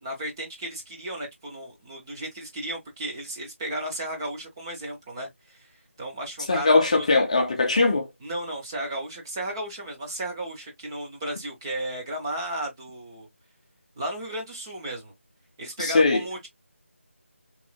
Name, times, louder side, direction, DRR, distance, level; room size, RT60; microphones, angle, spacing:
voice 1, 0.0-5.7 6.0-7.1 8.2-13.3 14.0-15.1 15.6-16.5, right 1 dB, 20° right, 0.7 m, -34 dB
voice 2, 6.5-8.1 15.8-16.2, left 3 dB, 30° left, 0.6 m, -20 dB
3.1 x 2.4 x 2.2 m
figure-of-eight pair, 170°, 7 cm